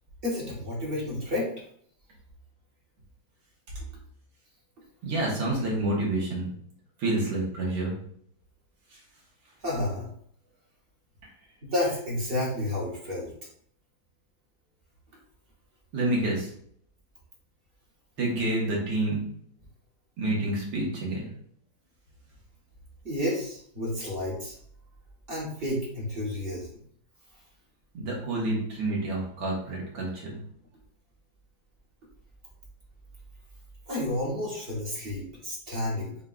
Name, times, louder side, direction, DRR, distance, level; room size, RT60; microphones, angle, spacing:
voice 1, 0.2-1.5 9.6-10.1 11.7-13.3 23.0-24.5 25.3-26.8 33.9-36.2, left 1 dB, 40° right, -4 dB, 0.9 m, -30 dB
voice 2, 5.0-6.5 7.0-7.9 15.9-16.5 18.2-19.2 20.2-21.3 27.9-30.4, right 2 dB, 70° right, -3 dB, 1.9 m, -28 dB
6.9 x 2.4 x 2.3 m, 0.64 s
omnidirectional pair, 2.2 m